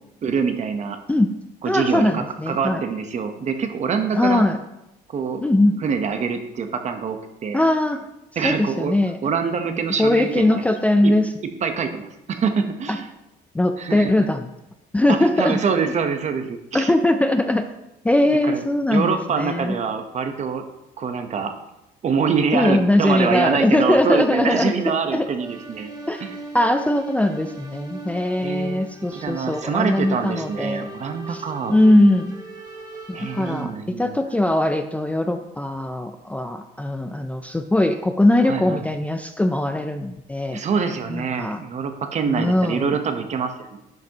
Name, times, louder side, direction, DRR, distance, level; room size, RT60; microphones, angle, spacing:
voice 1, 0.2-1.0 1.6-4.5 5.1-5.4 5.8-7.6 8.4-8.9 9.2-10.6 11.0-11.1 11.6-13.1 13.8-14.1 15.1-16.9 18.4-18.6 18.9-20.6 21.0-21.5 22.0-25.9 26.2-26.3 28.4-28.8 29.1-31.8 33.1-34.2 38.5-38.9 40.5-43.8, right 6 dB, 45° right, 7 dB, 0.9 m, -25 dB
voice 2, 1.7-2.8 4.1-4.6 5.4-5.7 7.5-8.1 8.4-9.2 10.0-11.3 12.9-13.0 13.5-14.5 14.9-15.6 16.7-17.7 18.0-19.8 22.5-25.3 26.1-26.2 26.5-30.9 31.3-31.4 31.7-32.4 33.1-40.6 41.1-41.6 42.3-43.0, left 1 dB, 10° left, 6 dB, 0.4 m, -20 dB
sound 1, 25.4-33.6, right 2 dB, 25° right, 2.4 m, -39 dB
10.5 x 5.9 x 2.9 m, 0.88 s
cardioid pair, 110°, 17 cm